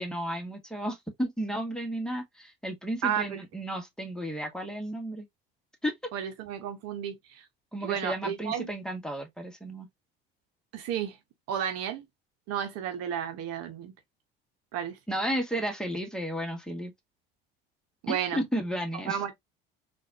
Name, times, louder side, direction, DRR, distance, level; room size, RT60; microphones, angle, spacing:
voice 1, 0.0-5.3 5.8-5.9 7.7-9.9 15.1-16.9 18.1-19.2, equal, ahead, 1.4 m, -33 dB
voice 2, 3.0-3.4 6.1-7.4 7.8-8.7 10.7-11.2 11.5-12.0 12.5-13.9 14.7-15.0 18.0-18.4 19.1-19.3, right 9 dB, 60° right, 1.0 m, -32 dB
3.9 x 2.6 x 2.7 m
hypercardioid pair, 70°, 29 cm